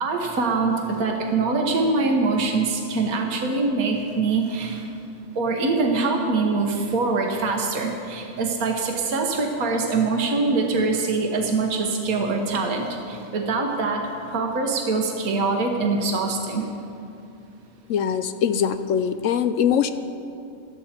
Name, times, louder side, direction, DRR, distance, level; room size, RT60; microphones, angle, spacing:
voice 1, 0.0-4.8 5.4-16.7, right 3 dB, 75° right, 2 dB, 1.6 m, -24 dB
voice 2, 17.9-19.9, left 8 dB, 70° left, 11 dB, 0.9 m, -22 dB
16.5 x 12.5 x 4.3 m, 2.6 s
omnidirectional pair, 1.5 m